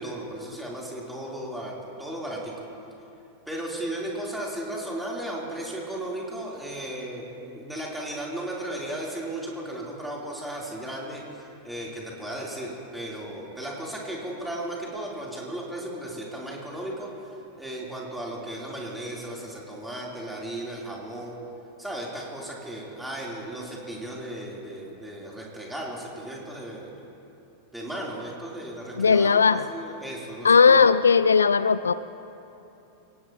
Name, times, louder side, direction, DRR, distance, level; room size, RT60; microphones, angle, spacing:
voice 1, 0.0-2.5 3.5-17.3 17.6-21.4 21.8-26.9 27.7-30.8, right 1 dB, 5° right, -4 dB, 3.5 m, -35 dB
voice 2, 29.0-29.6 30.4-31.9, left 5 dB, 75° left, 16 dB, 0.3 m, -17 dB
25.0 x 18.0 x 3.0 m, 2.8 s
figure-of-eight pair, 90°, 0 cm